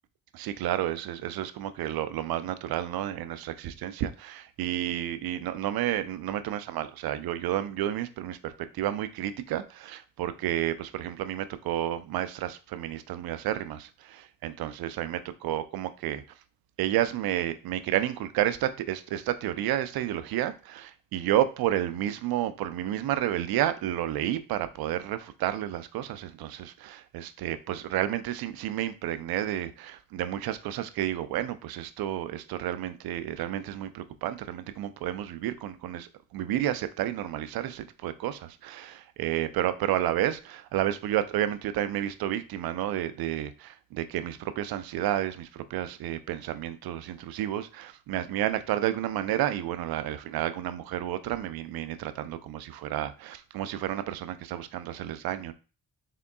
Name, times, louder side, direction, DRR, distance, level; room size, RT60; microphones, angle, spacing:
voice 1, 0.3-16.2 16.8-55.5, right 12 dB, 70° right, 0.5 m, -31 dB
3.7 x 3.6 x 2.3 m
supercardioid pair, 55°, 38 cm